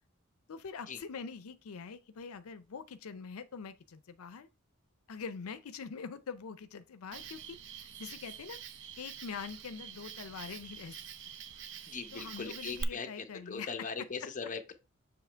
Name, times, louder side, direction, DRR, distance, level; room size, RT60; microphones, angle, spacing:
voice 1, 0.5-4.5 5.1-8.6 9.0-11.0 11.6-11.8 12.1-14.1, left 5 dB, 90° left, 0.5 m, -44 dB
Cricket, 7.1-12.8, right 7 dB, 60° right, 0.6 m, -46 dB
voice 2, 11.9-14.7, left 5 dB, 35° left, 0.8 m, -40 dB
7.1 x 3.1 x 4.4 m
head